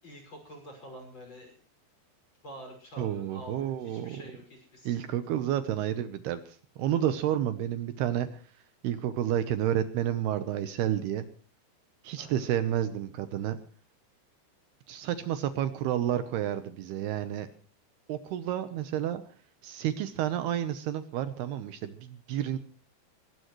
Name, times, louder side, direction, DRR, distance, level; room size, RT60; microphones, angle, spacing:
voice 1, 0.0-1.6 2.4-5.4 12.2-12.5, equal, 25° left, 3 dB, 6.3 m, -48 dB
voice 2, 3.0-4.2 4.9-8.4 8.8-11.2 12.0-13.6 14.9-17.5 18.1-19.2 19.6-22.6, right 11 dB, 75° right, 11 dB, 2.8 m, -30 dB
22.0 x 19.0 x 3.1 m, 0.41 s
omnidirectional pair, 5.0 m